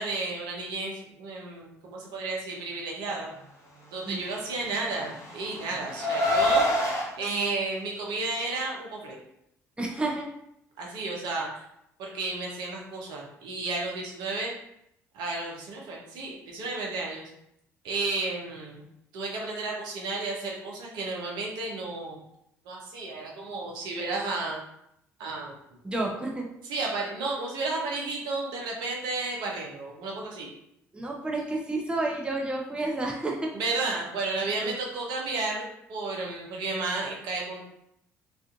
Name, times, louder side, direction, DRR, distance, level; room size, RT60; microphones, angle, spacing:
voice 1, 0.0-3.3 3.9-6.7 7.2-9.2 10.8-11.5 12.0-14.5 15.1-17.3 17.8-18.8 19.1-22.2 22.7-24.6 25.2-25.5 26.7-30.5 33.5-37.6, right 3 dB, 65° right, -2 dB, 0.6 m, -32 dB
Car, 4.5-7.1, left 1 dB, 40° left, 1.0 m, -26 dB
voice 2, 9.8-10.2 25.8-26.5 30.9-33.5 34.6-34.7, right 2 dB, 10° right, 0 dB, 0.5 m, -30 dB
2.4 x 2.4 x 2.3 m, 0.78 s
hypercardioid pair, 50°, 8 cm